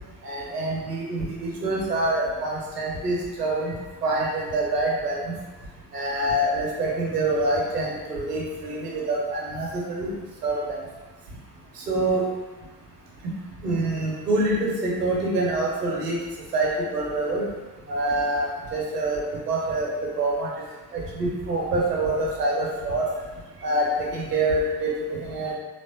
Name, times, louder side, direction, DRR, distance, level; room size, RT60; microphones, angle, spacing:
voice 1, 0.2-3.8 4.0-5.3 5.9-10.1 10.4-10.8 11.9-12.2 13.2-13.3 13.6-16.2 16.5-17.4 17.9-20.5 20.9-23.0 23.6-25.5, right 2 dB, 80° right, -2 dB, 0.9 m, -26 dB
4.2 x 3.2 x 2.7 m, 1.2 s
figure-of-eight pair, 55°, 46 cm